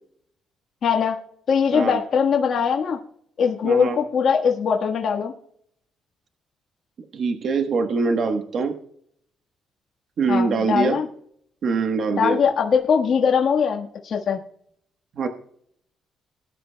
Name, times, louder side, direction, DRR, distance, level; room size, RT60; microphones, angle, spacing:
voice 1, 0.8-1.2 1.5-3.0 3.4-5.3 10.3-11.1 12.1-14.4, left 6 dB, 55° left, 1 dB, 1.4 m, -21 dB
voice 2, 1.7-2.0 3.6-4.0 7.1-8.7 10.2-11.0 11.6-12.4 15.1-15.3, right 4 dB, 55° right, 5 dB, 1.2 m, -23 dB
19.5 x 10.5 x 2.2 m, 0.66 s
cardioid pair, 115°, 0 cm